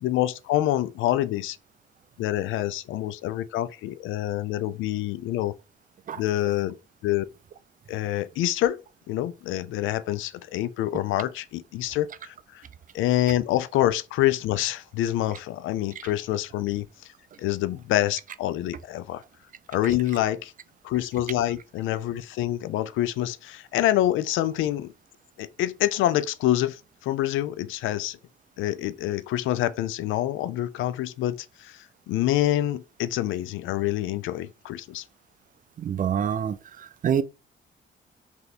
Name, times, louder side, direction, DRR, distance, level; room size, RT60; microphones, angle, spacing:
voice 1, 0.0-1.6 2.2-5.5 6.2-6.8 7.0-7.3 7.9-8.8 9.1-12.3 12.9-16.9 17.4-19.2 19.7-20.5 20.8-24.9 25.4-28.2 28.6-31.8 32.1-35.0, left 14 dB, 85° left, 0.4 m, -26 dB
voice 2, 35.9-36.5 37.0-37.2, right 8 dB, 45° right, 0.4 m, -24 dB
3.2 x 3.0 x 4.0 m
cardioid pair, 90°, 20 cm